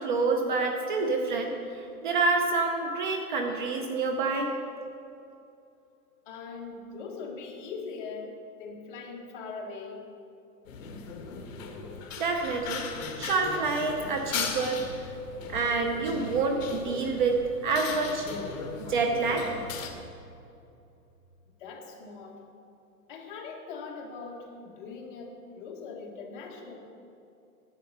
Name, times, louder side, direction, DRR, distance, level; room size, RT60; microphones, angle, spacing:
voice 1, 0.0-4.5 12.2-12.9 13.2-15.0 15.5-18.3 18.9-19.5, right 3 dB, 30° right, 4 dB, 0.7 m, -27 dB
voice 2, 6.2-10.1 12.9-13.0 20.0-20.3 21.6-22.4 23.1-26.8, left 4 dB, 35° left, 0 dB, 1.6 m, -41 dB
sound 1, 10.6-19.9, left 5 dB, 55° left, 1.7 m, -38 dB
11.0 x 8.9 x 6.6 m, 2.6 s
hypercardioid pair, 170°, 46 cm